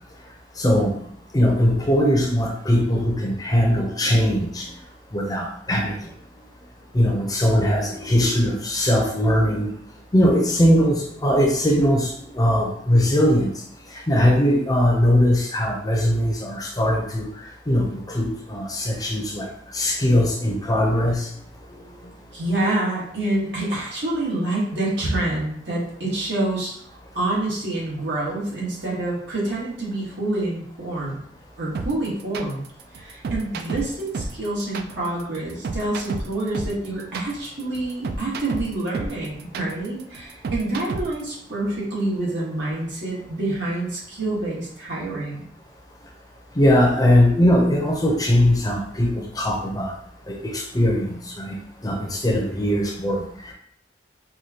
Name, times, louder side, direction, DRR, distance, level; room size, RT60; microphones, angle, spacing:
voice 1, 0.6-1.0 1.3-4.7 5.1-5.9 6.9-9.7 10.1-13.5 14.1-17.2 17.7-19.5 19.7-21.3 46.6-50.0 50.3-51.5 51.8-53.5, equal, 20° left, -1 dB, 0.6 m, -20 dB
voice 2, 22.3-26.7 27.1-31.2 31.6-32.6 32.9-45.5, right 2 dB, 80° right, -6 dB, 1.5 m, -27 dB
sound 1, 31.7-41.3, right 3 dB, 60° right, 0.3 m, -31 dB
4.8 x 2.3 x 2.8 m, 0.67 s
head